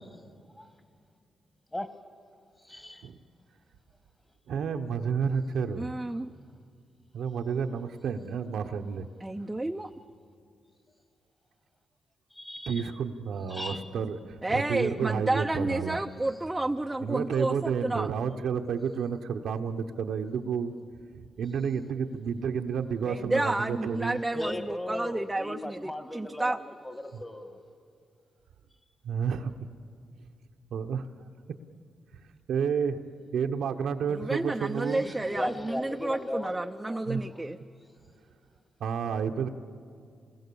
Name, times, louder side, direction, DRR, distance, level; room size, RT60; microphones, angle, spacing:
voice 1, 2.7-3.1 12.3-12.9 13.5-13.8 24.3-27.6 34.8-37.4, left 1 dB, 15° left, 9 dB, 1.6 m, -37 dB
voice 2, 4.5-5.9 7.1-9.1 12.7-16.0 17.0-20.7 21.4-24.2 29.0-29.5 30.7-31.1 32.5-33.0 33.3-35.1 37.1-37.2 38.8-39.5, right 6 dB, 80° right, 5 dB, 1.0 m, -30 dB
voice 3, 5.8-6.3 9.2-9.9 14.4-18.1 23.0-26.6 34.1-37.6, right 2 dB, 15° right, 4 dB, 0.6 m, -31 dB
27.0 x 20.5 x 7.0 m, 2.3 s
cardioid pair, 75°, 0 cm